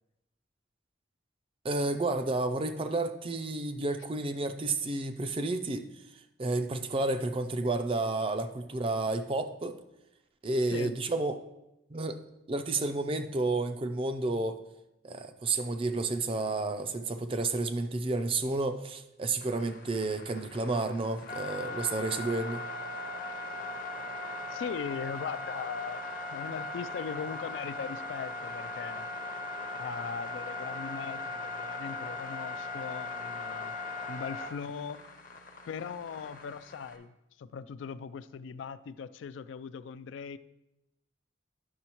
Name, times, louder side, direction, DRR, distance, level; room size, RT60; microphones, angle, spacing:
voice 1, 1.6-5.9 6.1-9.8 10.4-11.3 11.9-12.2 12.5-14.6 15.0-22.6, right 2 dB, 30° right, 0.4 m, -31 dB
sound 1, 19.4-37.0, left 2 dB, 45° left, 0.6 m, -39 dB
voice 2, 24.5-29.1 29.8-33.8 34.1-35.0 35.7-40.4, left 6 dB, 85° left, 0.3 m, -39 dB
9.4 x 6.2 x 2.9 m
head